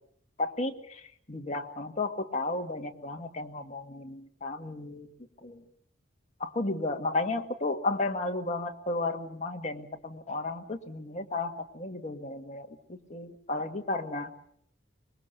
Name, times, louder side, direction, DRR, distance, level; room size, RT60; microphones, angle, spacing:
voice 1, 0.4-1.0 1.3-5.1 5.4-5.6 6.4-14.3, left 2 dB, 35° left, 3 dB, 1.9 m, -33 dB
25.0 x 21.0 x 6.8 m, 0.67 s
head